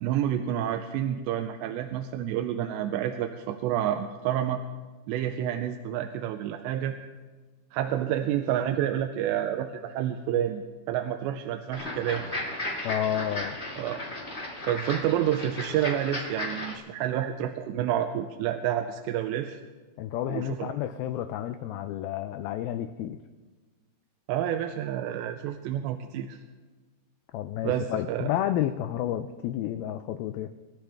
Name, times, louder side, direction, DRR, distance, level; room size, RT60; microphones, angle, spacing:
voice 1, 0.0-4.6 5.1-7.0 7.7-12.4 13.8-14.0 14.7-19.6 20.3-20.7 24.3-26.4 27.6-28.3, right 11 dB, 90° right, 6 dB, 2.9 m, -29 dB
sound 1, 11.7-16.7, left 1 dB, 70° left, 0.6 m, -35 dB
voice 2, 12.8-13.6 20.0-23.2 27.3-30.5, left 11 dB, 90° left, 10 dB, 2.1 m, -30 dB
26.5 x 13.0 x 3.5 m, 1.3 s
omnidirectional pair, 4.9 m